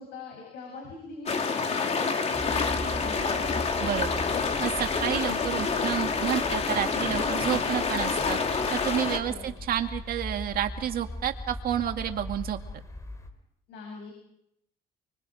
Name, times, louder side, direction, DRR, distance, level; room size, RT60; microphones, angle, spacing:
voice 1, 0.0-3.6 9.2-9.5 13.7-14.1, left 3 dB, 80° left, 0 dB, 7.8 m, -42 dB
sound 1, 1.3-9.2, left 5 dB, 40° left, 3.1 m, -28 dB
sound 2, 2.3-13.3, left 1 dB, 20° left, 4.0 m, -39 dB
voice 2, 3.8-4.2 4.6-12.6, right 10 dB, 60° right, 6 dB, 2.2 m, -30 dB
30.0 x 24.5 x 5.1 m, 0.77 s
cardioid pair, 110°, 17 cm